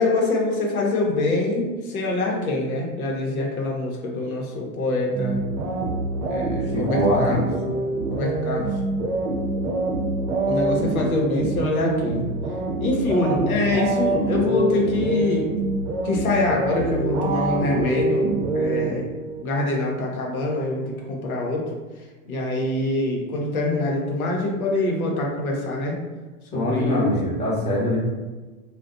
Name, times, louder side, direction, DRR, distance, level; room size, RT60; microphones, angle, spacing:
voice 1, 0.0-5.4 6.3-7.5 8.1-8.7 10.5-12.2 12.8-15.5 16.0-18.2 18.5-19.1 19.4-21.6 22.3-26.0 26.5-27.1, left 2 dB, 85° left, -1 dB, 0.8 m, -24 dB
sound 1, 5.1-19.4, right 2 dB, 55° right, 0.7 m, -25 dB
voice 2, 6.7-7.4 26.5-28.0, left 1 dB, 15° left, -6 dB, 0.8 m, -23 dB
2.5 x 2.1 x 2.4 m, 1.2 s
hypercardioid pair, 110°, 42 cm